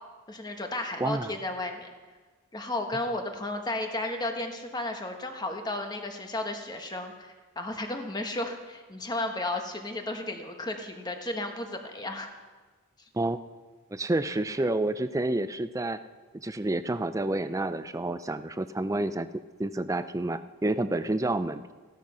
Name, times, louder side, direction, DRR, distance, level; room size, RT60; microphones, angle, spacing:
voice 1, 0.3-1.9 2.5-12.3, left 2 dB, 20° left, 4 dB, 1.2 m, -33 dB
voice 2, 1.0-1.3 13.1-13.4 13.9-16.0 16.3-19.3 19.6-21.7, right 2 dB, 15° right, 12 dB, 0.4 m, -29 dB
15.0 x 12.0 x 5.7 m, 1.3 s
head